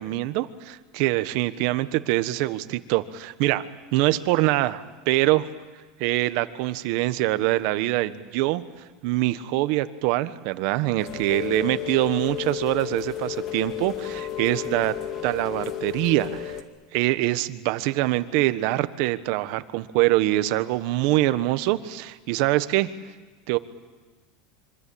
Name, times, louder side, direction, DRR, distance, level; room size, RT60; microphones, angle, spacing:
voice 1, 0.0-5.5 6.0-8.6 9.0-14.9 15.2-16.6 16.9-22.9 23.5-23.6, right 17 dB, 55° right, 12 dB, 1.3 m, -24 dB
Rain, 11.0-16.6, left 10 dB, 35° left, 2.3 m, -32 dB
26.0 x 25.0 x 8.7 m, 1.3 s
supercardioid pair, 155°, 0 cm